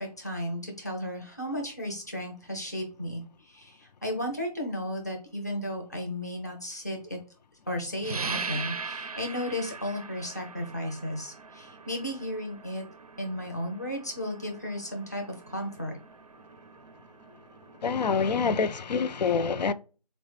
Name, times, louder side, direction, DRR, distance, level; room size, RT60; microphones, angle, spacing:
voice 1, 0.0-7.2 7.7-12.9 13.2-15.9, equal, 25° left, 0.5 m, -34 dB
sound 1, 8.0-18.3, right 4 dB, 60° right, 0.4 m, -41 dB
voice 2, 17.8-19.7, left 5 dB, 90° left, 0.4 m, -26 dB
3.9 x 2.0 x 3.0 m
figure-of-eight pair, 180°, 21 cm